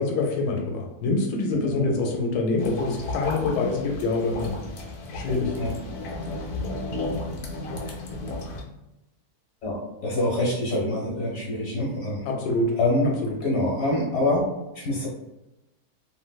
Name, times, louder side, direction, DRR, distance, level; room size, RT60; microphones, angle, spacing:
voice 1, 0.0-4.6 5.1-5.5 12.2-12.7 13.2-13.4, left 3 dB, 90° left, 1 dB, 1.1 m, -25 dB
voice 2, 1.5-1.9 5.6-5.8 9.6-12.2 12.8-13.1 13.4-14.4 14.7-15.1, left 1 dB, 50° left, -3 dB, 1.4 m, -25 dB
sound 1, 2.6-8.6, left 2 dB, 65° left, 1.0 m, -33 dB
3.1 x 2.7 x 2.3 m, 0.94 s
omnidirectional pair, 1.6 m